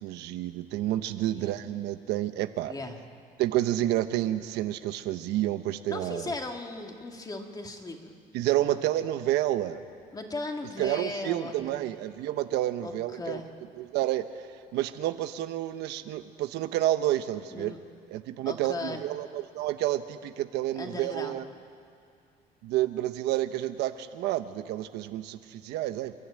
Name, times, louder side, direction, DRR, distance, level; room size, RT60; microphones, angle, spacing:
voice 1, 0.0-2.7 3.4-6.2 8.3-9.8 10.8-13.4 13.8-14.3 14.7-17.7 18.1-21.4 22.6-26.1, right 14 dB, 90° right, 10 dB, 1.0 m, -29 dB
voice 2, 2.7-3.0 5.9-8.1 8.6-8.8 10.1-11.9 12.8-13.5 17.5-17.8 18.4-19.0 20.8-21.4, left 2 dB, 20° left, 3 dB, 2.4 m, -37 dB
29.0 x 11.5 x 8.9 m, 2.4 s
cardioid pair, 110°, 17 cm